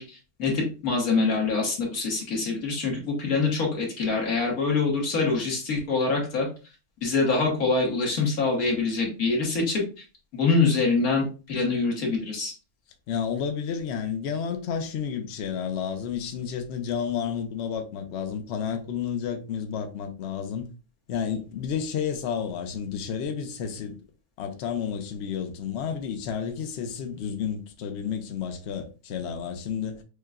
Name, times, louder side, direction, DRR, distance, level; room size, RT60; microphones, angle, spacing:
voice 1, 0.0-6.5 7.0-9.8 10.3-12.5, left 4 dB, 75° left, 1.7 m, -25 dB
voice 2, 13.1-20.7 21.1-24.0 24.4-30.0, left 7 dB, 60° left, 0.8 m, -31 dB
6.5 x 2.2 x 2.4 m
omnidirectional pair, 1.6 m